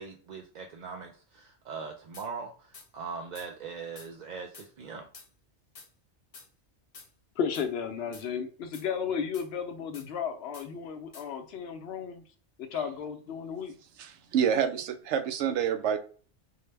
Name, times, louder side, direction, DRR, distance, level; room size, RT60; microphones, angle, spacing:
voice 1, 0.0-5.1, right 5 dB, 55° right, 2 dB, 0.5 m, -41 dB
sound 1, 2.1-2.3 2.7-2.9 3.3-3.5 4.0-4.1 4.5-4.7 5.1-5.3 5.7-5.9 6.3-6.5 6.9-7.1 7.5-7.7 8.1-8.3 8.7-8.9 9.3-9.5 9.9-10.1 10.5-10.7 11.1-11.3, left 4 dB, 40° left, 0.6 m, -49 dB
voice 2, 7.4-12.2 12.6-13.7, left 7 dB, 70° left, 6 dB, 0.8 m, -34 dB
voice 3, 14.0-16.0, right 8 dB, 85° right, 7 dB, 0.9 m, -27 dB
4.5 x 2.1 x 3.2 m, 0.41 s
omnidirectional pair, 1.2 m